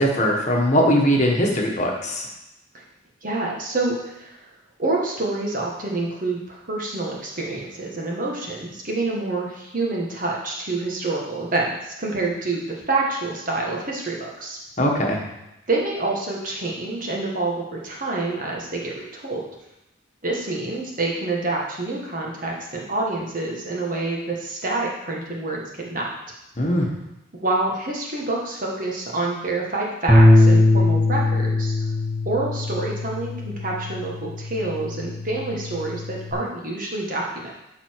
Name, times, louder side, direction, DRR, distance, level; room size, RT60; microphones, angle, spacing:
voice 1, 0.0-2.3 14.8-15.2 26.6-26.9, equal, 35° left, 0 dB, 1.4 m, -20 dB
voice 2, 3.2-4.4 4.8-14.6 15.7-19.4 20.2-26.1 27.4-31.7 32.2-37.5, right 2 dB, 45° right, -2 dB, 1.7 m, -27 dB
Bass guitar, 30.1-36.3, left 2 dB, 5° right, 1.4 m, -20 dB
12.0 x 4.3 x 4.7 m, 0.92 s
head